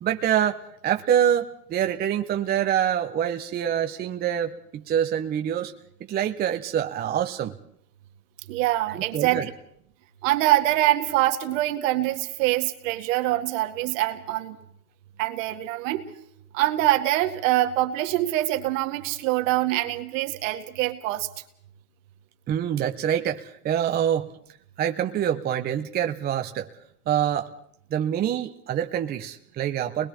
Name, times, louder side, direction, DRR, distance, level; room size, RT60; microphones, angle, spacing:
voice 1, 0.0-5.7 6.1-7.5 8.9-9.5 22.5-24.3 24.8-26.7 27.1-27.5 27.9-30.1, right 9 dB, 20° right, 6 dB, 0.8 m, -25 dB
voice 2, 8.5-9.5 10.2-14.6 15.2-16.1 16.5-21.3, right 15 dB, 55° right, 7 dB, 2.0 m, -24 dB
30.0 x 21.0 x 4.3 m, 0.70 s
hypercardioid pair, 125°, 46 cm